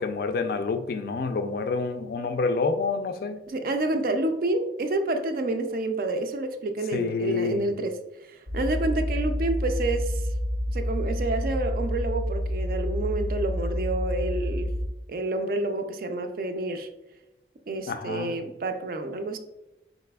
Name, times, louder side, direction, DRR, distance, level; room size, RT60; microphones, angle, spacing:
voice 1, 0.0-3.4 6.9-7.7 17.9-18.3, left 4 dB, 55° left, 9 dB, 0.3 m, -28 dB
voice 2, 3.5-10.3 10.7-14.7 15.1-16.9 17.7-19.4, right 2 dB, 50° right, 7 dB, 0.4 m, -29 dB
sound 1, 8.5-14.9, equal, 85° right, 0.8 m, -28 dB
4.1 x 4.0 x 2.2 m, 0.95 s
head